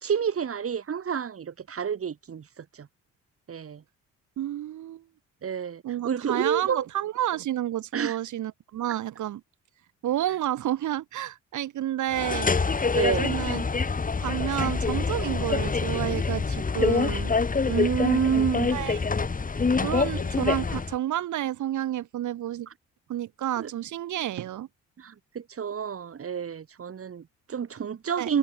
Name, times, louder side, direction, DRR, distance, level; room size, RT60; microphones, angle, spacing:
voice 1, 0.0-2.9 3.5-3.8 5.4-6.8 7.9-8.2 13.0-13.4 17.7-18.9 23.6-23.7 25.0-28.4, right 7 dB, 50° right, 4.5 m, -29 dB
voice 2, 4.4-5.0 5.8-9.4 10.0-12.5 13.2-13.6 14.2-17.3 18.7-19.0 19.8-22.7 23.1-24.7 28.2-28.3, right 12 dB, 75° right, 2.9 m, -30 dB
sound 1, 12.1-21.0, left 4 dB, 25° left, 2.4 m, -26 dB
cardioid pair, 90°, 30 cm